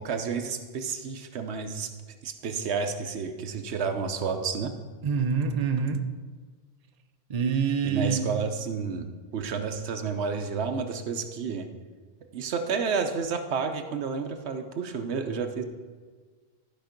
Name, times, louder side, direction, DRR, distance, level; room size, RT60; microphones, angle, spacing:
voice 1, 0.0-1.9 2.2-4.7 7.8-9.1 9.3-11.7 12.3-15.6, right 5 dB, 75° right, 7 dB, 1.0 m, -30 dB
voice 2, 5.0-6.1 7.3-8.4, right 6 dB, 40° right, 6 dB, 0.7 m, -26 dB
13.0 x 5.2 x 5.1 m, 1.5 s
omnidirectional pair, 1.1 m